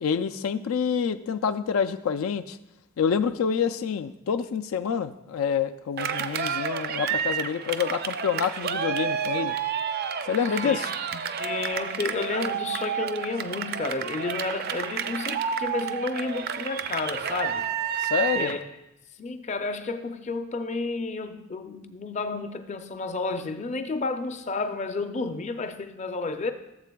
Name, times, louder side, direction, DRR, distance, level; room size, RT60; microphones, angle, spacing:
voice 1, 0.0-2.6 3.0-9.6 10.3-10.9 18.0-18.5, left 7 dB, 90° left, 0.4 m, -27 dB
Cheering, 6.0-18.6, right 7 dB, 50° right, 0.4 m, -30 dB
voice 2, 11.1-17.7 18.3-18.6 19.2-26.5, left 3 dB, 35° left, 0.5 m, -31 dB
15.0 x 7.4 x 2.3 m
head